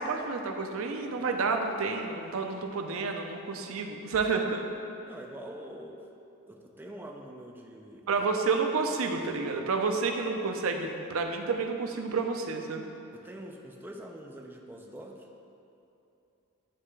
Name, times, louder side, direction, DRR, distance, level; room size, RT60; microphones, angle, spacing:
voice 1, 0.0-4.7 8.1-12.8, right 4 dB, 65° right, 4 dB, 0.5 m, -30 dB
voice 2, 5.0-6.0 6.5-8.2 13.1-15.3, right 1 dB, 10° right, 1 dB, 0.4 m, -45 dB
9.4 x 3.3 x 3.2 m, 2.8 s
head